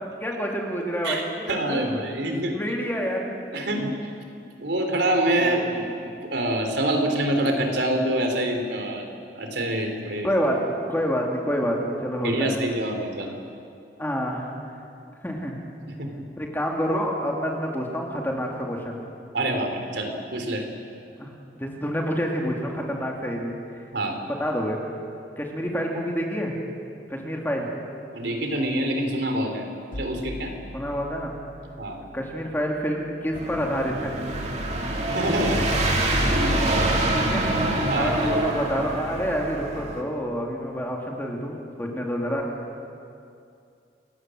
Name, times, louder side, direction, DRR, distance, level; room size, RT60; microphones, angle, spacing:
voice 1, 0.0-2.0 2.5-3.4 5.4-5.6 10.2-12.6 14.0-14.5 15.2-15.6 16.4-19.0 21.2-23.9 24.2-24.8 25.4-26.6 27.1-27.7 30.7-31.3 32.1-34.1 35.9-36.0 37.1-37.4 37.9-42.5, equal, 10° left, 0 dB, 2.9 m, -28 dB
voice 2, 1.0-2.5 3.5-4.1 4.6-9.1 9.3-10.3 12.2-13.3 16.0-16.2 19.3-20.7 23.9-24.2 28.1-29.7 30.0-30.5 31.8-32.0 35.1-35.7 36.1-36.9 37.1-37.3 37.8-38.4, right 1 dB, 75° right, 4 dB, 3.6 m, -26 dB
sound 1, 29.9-33.8, left 1 dB, 45° left, 2.8 m, -42 dB
sound 2, 33.3-40.0, right 1 dB, 40° right, 2.7 m, -25 dB
28.5 x 18.0 x 7.9 m, 2.5 s
head